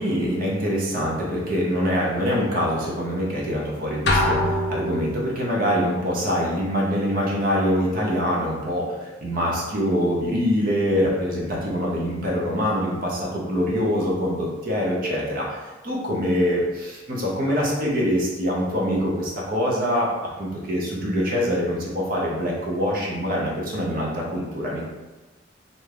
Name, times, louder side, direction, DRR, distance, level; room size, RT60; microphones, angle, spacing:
voice 1, 0.0-24.9, equal, 50° right, -3 dB, 0.6 m, -24 dB
sound 1, 4.1-5.5, left 1 dB, 60° left, 0.5 m, -23 dB
2.7 x 2.3 x 3.2 m, 1.2 s
head